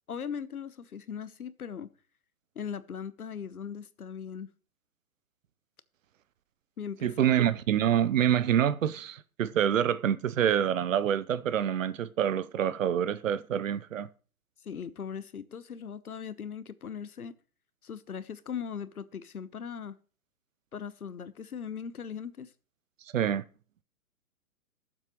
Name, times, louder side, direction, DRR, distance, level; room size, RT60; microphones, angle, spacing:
voice 1, 0.1-1.9 2.5-4.5 6.8-7.5 14.6-17.3 17.8-20.0 20.7-22.5, left 7 dB, 90° left, 1.0 m, -39 dB
voice 2, 7.0-14.1 23.1-23.4, right 9 dB, 65° right, 0.8 m, -26 dB
18.0 x 7.5 x 3.1 m
hypercardioid pair, 130°, 43 cm